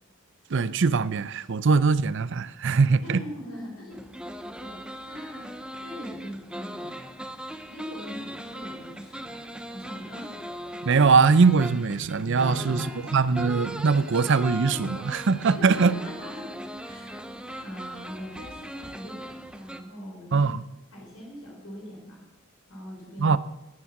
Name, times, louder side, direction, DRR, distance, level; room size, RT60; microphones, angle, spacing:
voice 1, 0.5-3.2 10.9-15.9 20.3-20.6 23.2-23.4, right 4 dB, 60° right, 0.5 m, -21 dB
voice 2, 2.9-4.1 4.6-5.5 5.8-7.2 7.7-9.4 9.6-10.5 12.4-12.9 15.5-16.5 16.8-20.5 20.9-22.2 22.7-23.3, left 1 dB, 75° left, 4.4 m, -41 dB
sound 1, 3.9-19.8, equal, 5° right, 0.6 m, -39 dB
14.5 x 9.7 x 6.0 m
head